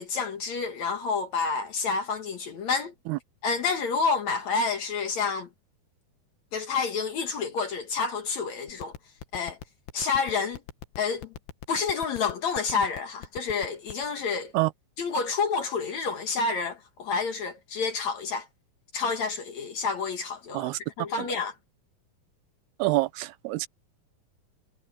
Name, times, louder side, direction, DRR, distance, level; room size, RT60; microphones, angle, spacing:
voice 1, 0.0-2.9 3.4-5.5 6.5-8.9 9.3-9.6 9.9-10.6 11.0-11.3 11.7-14.5 15.0-18.5 18.9-20.7 21.0-21.5, left 5 dB, 60° left, 2.2 m, -29 dB
sound 1, 8.7-14.1, left 9 dB, 85° left, 3.6 m, -39 dB
voice 2, 22.8-23.7, right 20 dB, 80° right, 2.7 m, -26 dB
omnidirectional pair, 4.6 m